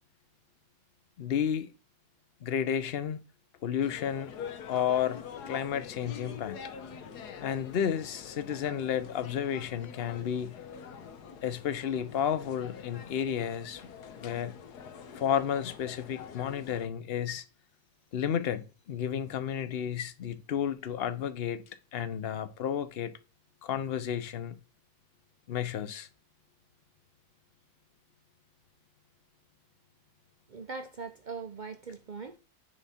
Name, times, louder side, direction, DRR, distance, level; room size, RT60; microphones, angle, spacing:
voice 1, 1.2-1.7 2.4-3.2 3.6-4.3 4.7-6.6 7.4-10.5 11.4-13.8 14.2-14.5 15.1-17.4 18.1-21.6 21.9-23.1 23.6-24.6 25.5-26.1, left 9 dB, 50° left, 0.8 m, -32 dB
sound 1, 3.8-16.9, left 7 dB, 80° left, 1.5 m, -45 dB
voice 2, 30.5-32.4, right 4 dB, 65° right, 0.4 m, -41 dB
10.0 x 3.5 x 4.2 m
omnidirectional pair, 1.7 m